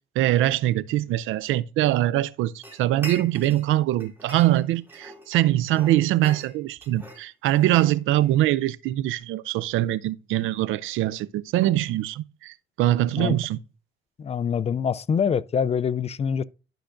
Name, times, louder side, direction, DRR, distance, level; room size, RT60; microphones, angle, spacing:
voice 1, 0.2-13.6, right 14 dB, 85° right, 0.4 m, -23 dB
sound 1, 2.6-3.7 4.0-5.3 5.7-8.4, right 1 dB, 10° right, 2.6 m, -43 dB
voice 2, 14.2-16.4, left 7 dB, 30° left, 0.4 m, -25 dB
12.0 x 5.7 x 2.5 m
cardioid pair, 90°, 20 cm